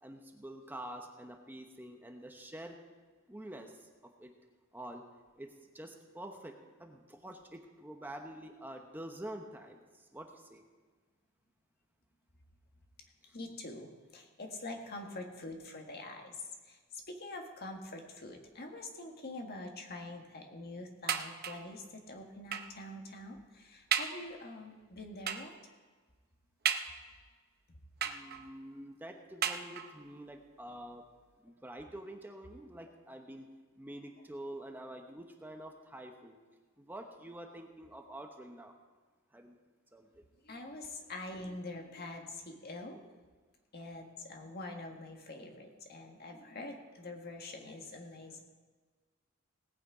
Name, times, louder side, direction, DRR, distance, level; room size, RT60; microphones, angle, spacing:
voice 1, 0.0-2.8 3.3-3.9 4.2-4.3 4.7-5.0 5.4-10.6 13.2-13.4 28.0-31.0 31.4-33.5 33.8-36.4 36.8-38.8 39.3-39.6 39.9-40.1, right 1 dB, 10° right, 3 dB, 0.9 m, -47 dB
voice 2, 13.3-16.8 17.1-25.5 40.4-43.0 43.7-48.4, left 2 dB, 50° left, 2 dB, 1.7 m, -45 dB
sound 1, 21.1-21.7 22.5-22.8 23.4-23.5 23.9-24.3 25.3-25.6 26.6-27.3 28.0-28.6 29.4-30.1 30.9-31.0 31.3-31.4, right 8 dB, 45° right, 0.8 m, -35 dB
18.5 x 8.7 x 4.9 m, 1.4 s
head